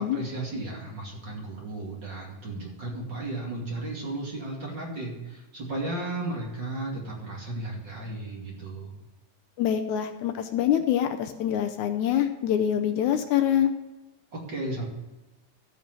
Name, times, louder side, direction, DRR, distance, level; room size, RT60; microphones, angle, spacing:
voice 1, 0.0-9.0 14.3-14.9, right 2 dB, 35° right, -2 dB, 2.9 m, -34 dB
voice 2, 9.6-13.7, left 10 dB, 75° left, 6 dB, 2.0 m, -25 dB
13.5 x 5.5 x 7.6 m, 1.1 s
omnidirectional pair, 3.6 m